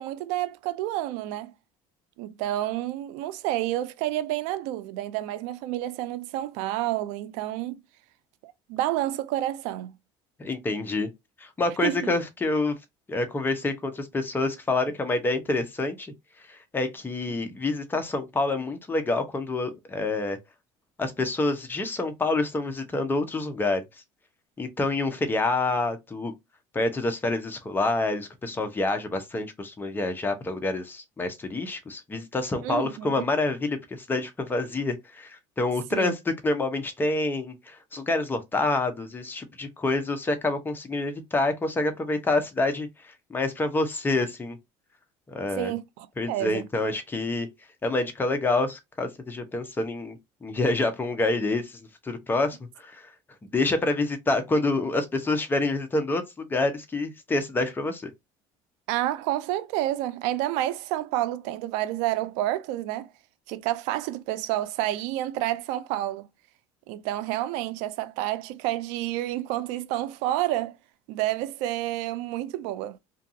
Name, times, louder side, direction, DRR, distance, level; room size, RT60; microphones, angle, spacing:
voice 1, 0.0-1.5 2.2-7.8 8.4-9.9 11.8-12.1 32.6-33.2 35.9-36.1 45.6-46.6 58.9-63.1 63.5-66.3 66.9-70.8 71.1-73.0, right 14 dB, 80° right, 0.4 m, -29 dB
voice 2, 10.4-11.1 11.4-12.8 13.1-16.1 16.5-20.4 21.0-23.8 24.6-26.3 26.7-36.2 36.4-44.6 45.3-45.7 46.2-47.5 47.8-53.1 53.4-58.1, left 2 dB, 15° left, 0.7 m, -27 dB
2.5 x 2.3 x 2.6 m
supercardioid pair, 115°, 12 cm